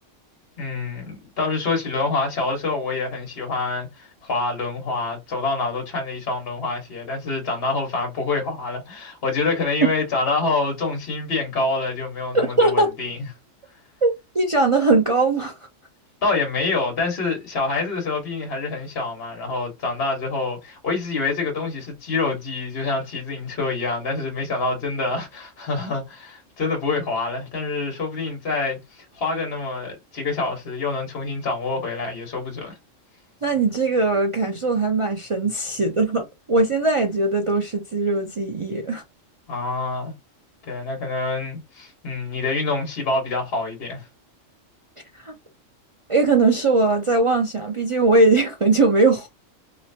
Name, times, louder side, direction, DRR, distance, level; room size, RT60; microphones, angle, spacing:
voice 1, 0.6-13.2 16.2-32.7 39.5-40.1 40.7-44.1, left 3 dB, 50° left, 1.4 m, -26 dB
voice 2, 12.3-12.9 14.0-15.6 33.4-39.0 45.2-45.3 46.1-49.3, right 3 dB, 55° right, 0.3 m, -20 dB
3.1 x 3.0 x 2.7 m
omnidirectional pair, 1.3 m